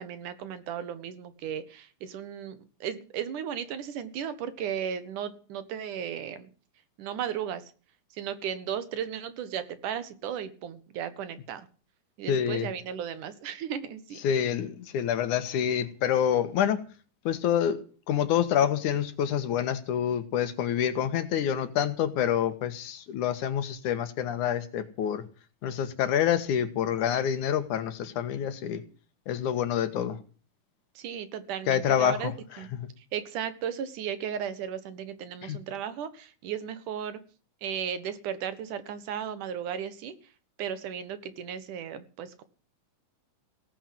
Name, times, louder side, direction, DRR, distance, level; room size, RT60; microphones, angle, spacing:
voice 1, 0.0-6.5 7.0-7.6 8.2-11.7 12.2-14.2 31.0-32.3 32.6-32.7 33.1-37.2 37.6-40.1 40.6-42.4, right 8 dB, 80° right, 13 dB, 3.0 m, -35 dB
voice 2, 12.3-12.7 14.2-16.8 17.2-25.2 25.6-28.8 29.3-30.2 31.7-32.3 32.7-32.9 35.4-35.6, left 9 dB, 75° left, 11 dB, 2.9 m, -27 dB
17.5 x 9.3 x 7.7 m, 0.39 s
omnidirectional pair, 3.6 m